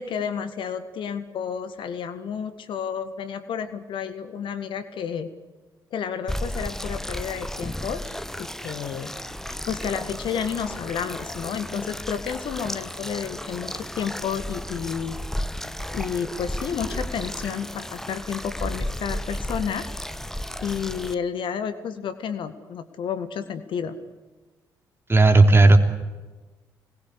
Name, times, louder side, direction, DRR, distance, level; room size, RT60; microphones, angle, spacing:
voice 1, 0.0-5.3 5.9-9.1 9.7-15.2 15.9-19.9 20.6-23.9, left 7 dB, 55° left, 10 dB, 1.8 m, -31 dB
sound 1, 6.3-21.1, left 1 dB, 5° left, 1.2 m, -33 dB
voice 2, 25.1-25.8, right 2 dB, 25° right, 6 dB, 3.3 m, -13 dB
27.5 x 20.5 x 8.5 m, 1.3 s
figure-of-eight pair, 40°, 10 cm